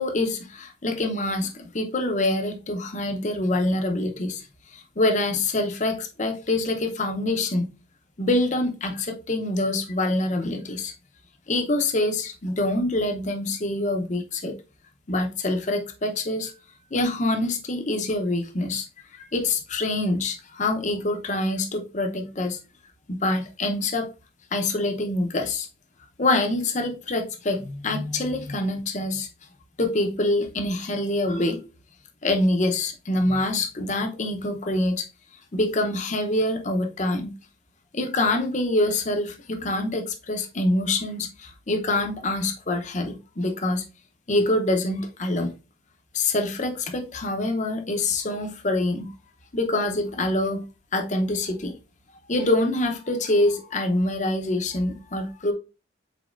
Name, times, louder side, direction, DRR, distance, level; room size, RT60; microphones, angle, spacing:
voice 1, 0.0-4.4 4.7-7.7 8.2-10.9 11.5-14.5 15.1-16.5 16.9-18.9 19.1-22.6 23.1-24.1 24.5-25.7 26.2-29.3 29.8-31.6 32.2-35.1 35.5-37.3 37.9-43.8 44.3-45.5 46.1-49.1 49.5-50.7 50.9-51.7 52.3-55.5, left 2 dB, 35° left, 0.7 m, -25 dB
5.1 x 4.1 x 2.4 m
head